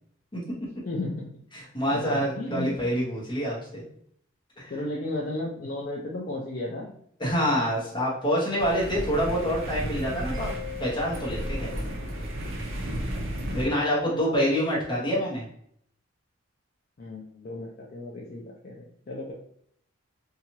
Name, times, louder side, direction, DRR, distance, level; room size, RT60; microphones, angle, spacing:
voice 1, 0.8-1.3 1.9-2.9 4.7-6.9 10.5-10.6 13.7-14.6 17.0-19.3, left 2 dB, 45° left, -3 dB, 0.4 m, -35 dB
voice 2, 1.5-3.9 4.6-4.7 7.2-10.5 10.8-11.7 13.5-15.4, equal, 20° left, -6 dB, 0.8 m, -26 dB
sound 1, 8.6-13.7, right 1 dB, 70° right, 0.7 m, -33 dB
Mallet percussion, 10.3-12.9, left 10 dB, 15° right, 0.6 m, -42 dB
2.7 x 2.3 x 2.9 m, 0.67 s
head